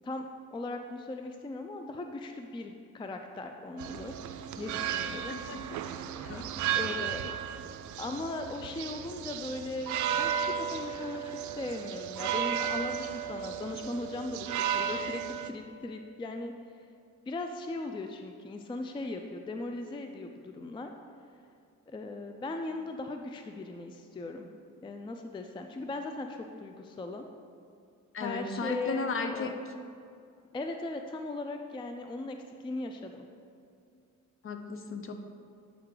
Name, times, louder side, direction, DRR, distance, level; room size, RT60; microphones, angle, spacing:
voice 1, 0.0-4.2 4.5-5.4 6.7-7.2 8.0-16.5 17.3-20.9 21.9-27.3 28.2-29.5 30.5-33.3, left 2 dB, 15° left, 5 dB, 0.3 m, -38 dB
sound 1, 3.8-15.5, right 8 dB, 75° right, 0.4 m, -34 dB
voice 2, 5.3-5.8 6.2-6.4 7.2-7.3 28.1-29.6 34.4-35.1, left 3 dB, 45° left, 6 dB, 0.7 m, -35 dB
8.2 x 3.7 x 4.7 m, 2.4 s
cardioid pair, 90°, 30 cm